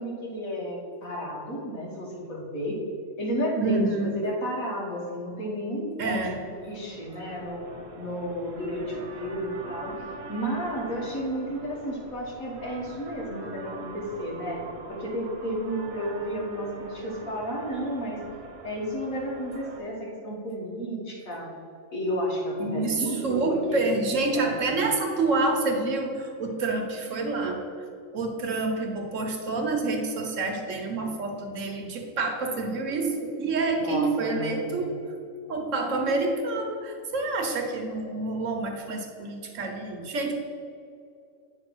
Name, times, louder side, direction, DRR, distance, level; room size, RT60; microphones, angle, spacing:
voice 1, 0.0-2.8 3.2-6.2 6.5-7.6 8.0-10.0 10.3-14.6 14.9-18.2 18.6-21.5 21.9-23.8 33.8-34.9, equal, 75° left, -3 dB, 2.0 m, -32 dB
voice 2, 3.6-4.2 6.0-6.4 22.6-27.9 28.1-35.1 35.5-40.3, right 3 dB, 65° right, 3 dB, 1.3 m, -28 dB
sound 1, 6.3-19.8, right 3 dB, 90° right, 1.4 m, -43 dB
8.9 x 3.4 x 6.1 m, 2.4 s
omnidirectional pair, 1.4 m